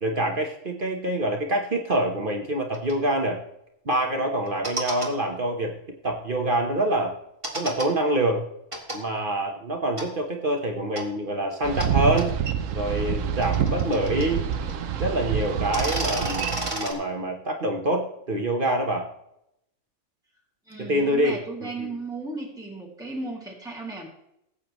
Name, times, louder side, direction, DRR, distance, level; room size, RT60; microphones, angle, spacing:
voice 1, 0.0-3.4 3.8-5.7 6.0-7.1 7.5-8.4 8.9-12.3 12.7-14.4 15.0-19.0 20.8-21.9, right 1 dB, 45° right, 2 dB, 1.3 m, -26 dB
sound 1, 2.7-2.9 4.5-5.1 7.4-7.9 8.7-9.0 10.0-10.1 11.0-11.1 11.8-11.9 12.2-12.3 13.2-14.7 15.0-15.1 15.6-16.9, right 1 dB, 25° right, 2.1 m, -31 dB
Boat Water vehicle, 11.6-16.7, right 8 dB, 80° right, 1.1 m, -27 dB
voice 2, 20.7-24.1, right 3 dB, 5° right, -3 dB, 2.4 m, -35 dB
17.0 x 8.4 x 3.1 m, 0.79 s
omnidirectional pair, 1.3 m